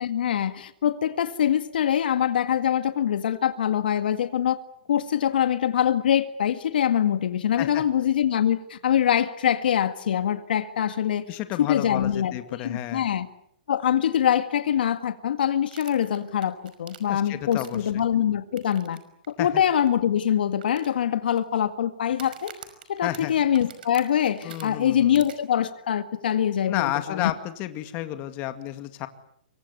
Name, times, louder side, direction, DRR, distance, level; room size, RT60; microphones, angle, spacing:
voice 1, 0.0-4.6 4.9-11.2 11.6-13.3 13.7-19.0 19.3-22.5 22.9-27.3, left 9 dB, 70° left, 10 dB, 1.9 m, -24 dB
voice 2, 11.3-13.1 17.1-17.8 19.4-19.5 23.0-23.3 24.4-25.2 26.7-29.1, left 14 dB, 30° left, 9 dB, 2.2 m, -31 dB
sound 1, 15.7-18.0 18.6-19.0 19.2-19.3 19.9-20.0 20.6-21.4 22.1-24.6 25.1-25.3, right 9 dB, 60° right, 5.5 m, -45 dB
26.0 x 23.0 x 8.3 m, 0.69 s
hypercardioid pair, 145°, 5 cm